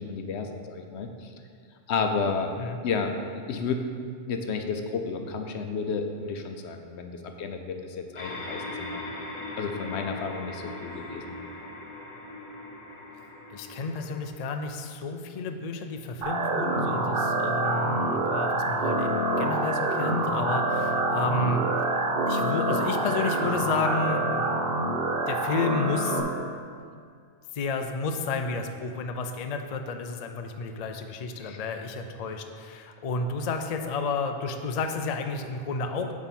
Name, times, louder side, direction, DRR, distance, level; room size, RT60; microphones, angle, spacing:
voice 1, 0.0-1.3 1.9-2.5 2.8-3.9 4.3-9.0 9.6-11.4 31.4-31.6, left 4 dB, 75° left, 5 dB, 0.9 m, -32 dB
sound 1, 8.1-14.3, left 2 dB, 30° left, 0.9 m, -39 dB
voice 2, 13.5-21.6 22.3-24.5 25.3-26.2 27.5-36.1, left 4 dB, 55° left, 5 dB, 0.4 m, -31 dB
sound 2, 16.2-26.2, right 2 dB, 60° right, 0.9 m, -26 dB
8.4 x 3.7 x 5.9 m, 2.2 s
omnidirectional pair, 1.1 m